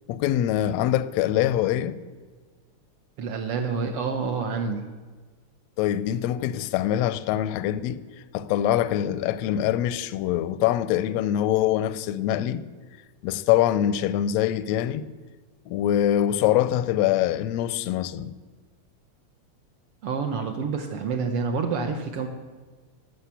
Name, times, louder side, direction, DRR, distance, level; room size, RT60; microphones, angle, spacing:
voice 1, 0.1-2.0 5.8-8.0 8.3-12.6 13.2-15.1 15.7-18.3, left 11 dB, 80° left, 1.6 m, -24 dB
voice 2, 3.2-4.8 20.0-22.3, right 5 dB, 70° right, 1.5 m, -28 dB
12.0 x 6.6 x 8.3 m
omnidirectional pair, 3.4 m